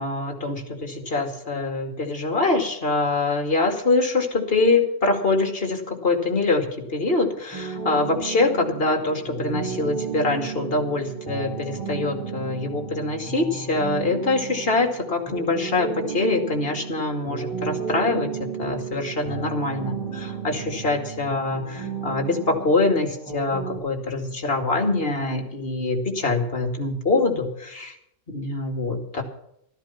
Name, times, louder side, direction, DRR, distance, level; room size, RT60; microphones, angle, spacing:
voice 1, 0.0-18.3 18.6-28.0 28.3-29.2, left 3 dB, 40° left, 4 dB, 2.6 m, -24 dB
sound 1, 7.5-23.8, right 6 dB, 15° right, 5.6 m, -33 dB
13.5 x 13.0 x 5.8 m, 0.74 s
omnidirectional pair, 1.5 m